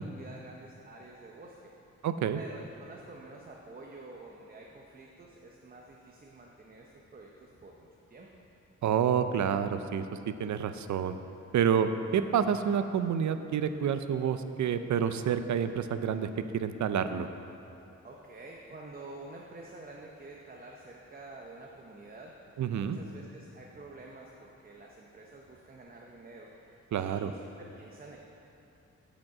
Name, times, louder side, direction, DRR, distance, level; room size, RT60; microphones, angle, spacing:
voice 1, 0.0-1.7 2.3-8.3 18.0-28.2, right 2 dB, 30° right, -1 dB, 0.7 m, -49 dB
voice 2, 2.0-2.4 8.8-10.0 10.4-11.2 11.5-17.3 22.6-23.0 26.9-27.3, right 8 dB, 75° right, 10 dB, 0.5 m, -28 dB
15.0 x 5.2 x 4.8 m, 2.8 s
wide cardioid pair, 155°, 29 cm